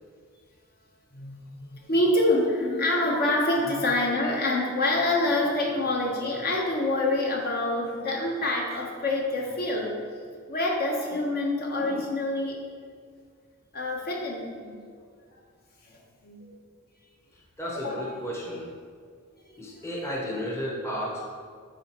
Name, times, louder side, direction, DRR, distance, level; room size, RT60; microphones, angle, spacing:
voice 1, 1.1-9.9 10.5-12.6 13.7-14.9 15.9-16.5 17.7-18.1 19.7-19.8, left 1 dB, 45° left, -1 dB, 0.9 m, -26 dB
voice 2, 17.6-18.7 19.6-21.3, equal, 10° left, -4 dB, 0.9 m, -33 dB
9.5 x 3.9 x 3.0 m, 2.1 s
head